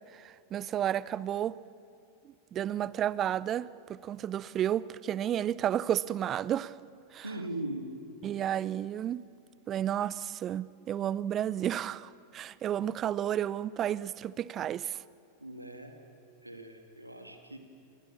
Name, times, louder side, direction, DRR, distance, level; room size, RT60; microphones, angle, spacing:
voice 1, 0.1-1.6 2.2-6.8 7.1-7.3 8.2-9.2 9.7-15.0, right 10 dB, 30° right, 20 dB, 0.5 m, -32 dB
voice 2, 7.2-7.9 15.4-15.9 16.4-17.6, right 1 dB, 85° right, 5 dB, 2.4 m, -39 dB
27.5 x 23.0 x 7.1 m, 2.6 s
figure-of-eight pair, 90°, 0 cm